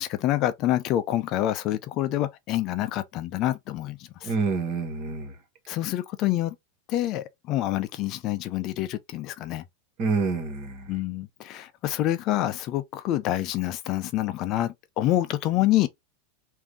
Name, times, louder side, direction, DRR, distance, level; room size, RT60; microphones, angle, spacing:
voice 1, 0.0-4.3 5.7-6.5 6.9-9.6 10.9-15.9, left 14 dB, 45° left, 0.5 m, -27 dB
voice 2, 4.2-5.4 10.0-11.0, right 4 dB, 45° right, 1.9 m, -27 dB
3.6 x 2.7 x 3.5 m
supercardioid pair, 130°, 0 cm